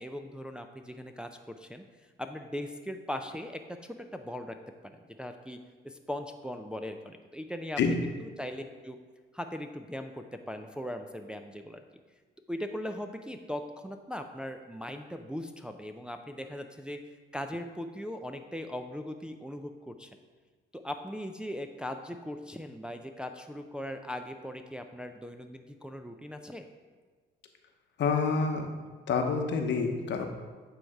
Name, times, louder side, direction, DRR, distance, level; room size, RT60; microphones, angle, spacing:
voice 1, 0.0-1.8 2.2-4.6 4.8-5.6 5.8-7.8 8.2-9.0 9.3-11.8 12.5-17.0 17.3-20.1 20.7-26.7, left 1 dB, 5° right, 5 dB, 0.4 m, -39 dB
voice 2, 28.0-28.7 29.1-30.3, left 5 dB, 65° left, 4 dB, 0.9 m, -27 dB
8.6 x 3.3 x 4.6 m, 1.4 s
cardioid pair, 90°, 20 cm